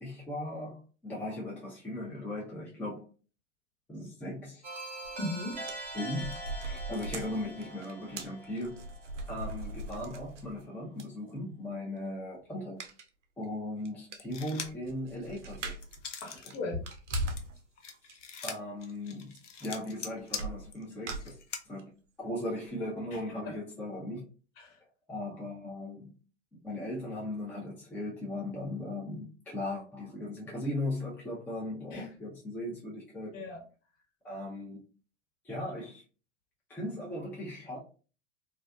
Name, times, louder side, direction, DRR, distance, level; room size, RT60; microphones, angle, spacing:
voice 1, 0.0-3.1 3.9-4.7 5.9-8.8 9.3-12.8 13.4-15.7 18.4-19.3 19.6-21.4 21.6-21.9 22.2-24.2 25.1-26.2 26.5-33.3 34.2-34.8 35.4-36.0 36.7-37.8, left 1 dB, 5° left, 0.5 m, -38 dB
sound 1, 4.6-9.4, right 1 dB, 20° right, 0.8 m, -43 dB
sound 2, 5.0-5.2 5.5-10.6 11.0-11.1 12.8-13.1 13.4-13.5 13.9-14.0 14.1-16.0 16.3-17.5 17.9-18.2 19.3-19.4 19.6-20.0 20.4-21.8 22.3-22.4 22.7-22.8, right 1 dB, 80° right, 0.6 m, -39 dB
voice 2, 5.2-5.6 16.2-16.8 23.1-23.6 24.6-24.8 31.9-32.1 33.3-33.6, left 2 dB, 45° left, 1.2 m, -38 dB
sound 3, 14.2-14.9 15.3-16.6 16.9-21.6, left 6 dB, 85° left, 0.6 m, -42 dB
2.4 x 2.4 x 2.2 m
figure-of-eight pair, 95°, 36 cm